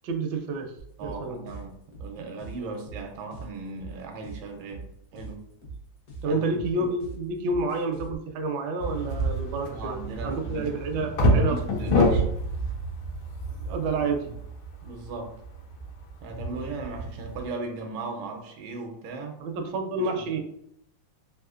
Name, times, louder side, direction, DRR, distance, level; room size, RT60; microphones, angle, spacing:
voice 1, 0.0-0.7 1.0-1.4 6.2-10.0 10.2-11.6 11.9-12.0 13.6-14.2 19.4-20.4, right 3 dB, 75° right, 4 dB, 1.1 m, -29 dB
sound 1, 0.8-8.2, right 3 dB, 60° left, 1.2 m, -42 dB
voice 2, 1.0-5.4 6.2-6.4 6.8-6.9 9.7-12.4 14.0-14.3 14.8-15.3 16.2-19.4 20.0-20.4, right 3 dB, 90° right, 3 dB, 1.4 m, -38 dB
sound 2, 8.8-17.4, equal, 85° left, 1.4 m, -28 dB
3.6 x 2.7 x 2.4 m, 0.74 s
omnidirectional pair, 2.1 m